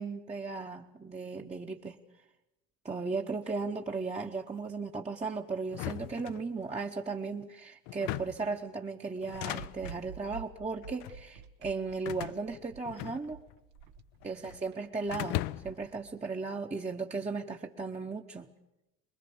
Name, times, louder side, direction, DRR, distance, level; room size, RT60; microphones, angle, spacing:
voice 1, 0.0-2.0 2.8-13.4 14.2-18.5, right 4 dB, 15° right, 2 dB, 1.1 m, -36 dB
sound 1, 5.7-6.9 7.9-8.5 9.2-10.0 10.8-11.2 12.0-13.6 13.8-14.6 15.1-15.9, left 17 dB, 55° left, 0.7 m, -38 dB
sound 2, 9.3-16.1, right 7 dB, 70° right, 1.5 m, -49 dB
23.5 x 21.5 x 7.1 m, 0.92 s
hypercardioid pair, 70°, 50 cm